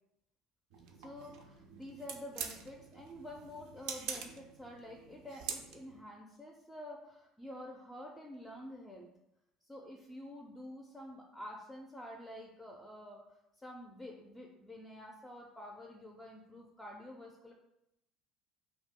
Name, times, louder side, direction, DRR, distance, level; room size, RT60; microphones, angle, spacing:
sound 1, 0.7-6.0, right 7 dB, 70° right, 0.3 m, -45 dB
voice 1, 1.0-9.1 9.6-17.5, left 1 dB, 10° left, -1 dB, 0.4 m, -49 dB
2.3 x 2.0 x 3.6 m, 0.84 s
hypercardioid pair, 70°, 0 cm